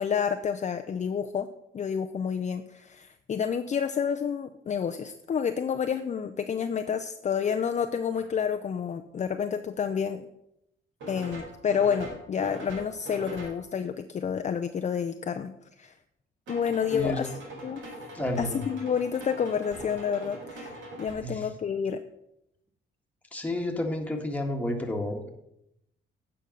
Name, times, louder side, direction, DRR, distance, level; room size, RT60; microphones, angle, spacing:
voice 1, 0.0-1.5 1.7-10.3 11.1-15.5 15.8-15.9 16.5-17.3 17.6-17.8 18.4-22.0, left 7 dB, 35° left, 7 dB, 0.5 m, -29 dB
sound 1, 8.1-8.3 11.0-13.6 16.5-21.1, right 1 dB, 75° right, 4.0 m, -42 dB
voice 2, 18.1-18.6 21.2-21.5 23.3-25.3, left 1 dB, 5° left, 2 dB, 1.6 m, -31 dB
8.9 x 5.4 x 6.4 m, 0.82 s
cardioid pair, 90°, 20 cm